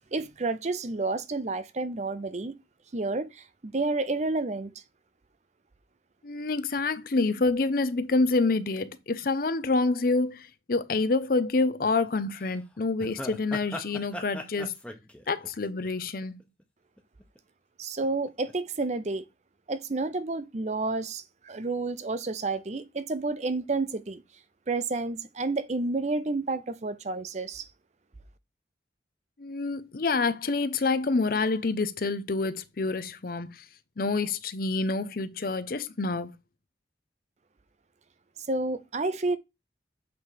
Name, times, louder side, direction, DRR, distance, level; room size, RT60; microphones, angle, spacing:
voice 1, 0.1-2.5 2.9-4.7 17.8-19.3 19.7-24.2 24.7-27.7 38.5-39.4, right 3 dB, 40° right, 0.6 m, -30 dB
voice 2, 6.2-14.7 15.3-16.4 29.4-33.6 34.0-36.3, left 3 dB, 55° left, 0.6 m, -27 dB
sound 1, 11.8-12.1 12.4-12.5 13.0-16.6 17.0-17.4 18.0-18.5 18.8-18.9, left 1 dB, 5° left, 0.9 m, -40 dB
8.1 x 3.3 x 4.8 m
head